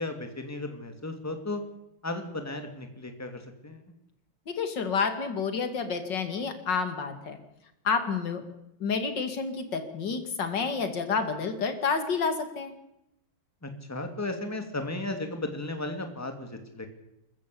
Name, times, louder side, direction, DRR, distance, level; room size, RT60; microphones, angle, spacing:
voice 1, 0.0-1.6 2.0-3.8 13.6-16.9, left 2 dB, 5° left, 6 dB, 2.4 m, -35 dB
voice 2, 4.5-7.4 7.8-8.4 8.8-12.7, left 5 dB, 55° left, 8 dB, 2.9 m, -29 dB
26.5 x 14.5 x 8.5 m, 0.86 s
omnidirectional pair, 2.3 m